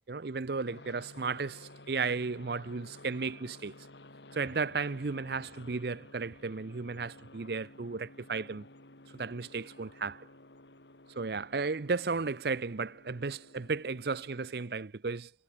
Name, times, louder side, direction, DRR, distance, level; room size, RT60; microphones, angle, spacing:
voice 1, 0.0-3.7 4.3-8.6 9.1-10.3 11.1-15.4, right 4 dB, 65° right, 0.6 m, -34 dB
sound 1, 0.6-14.7, left 2 dB, 85° left, 4.0 m, -54 dB
head